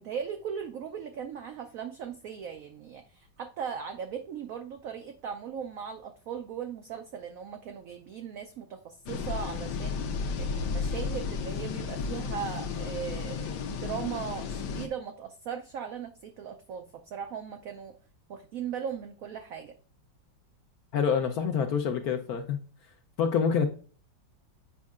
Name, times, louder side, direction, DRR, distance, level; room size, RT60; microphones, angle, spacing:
voice 1, 0.0-17.9 18.3-19.7, right 7 dB, 80° right, 0.7 m, -38 dB
sound 1, 9.1-14.9, left 5 dB, 85° left, 1.4 m, -33 dB
voice 2, 20.9-22.6 23.2-23.7, left 6 dB, 70° left, 0.9 m, -26 dB
8.4 x 5.2 x 2.4 m
omnidirectional pair, 2.0 m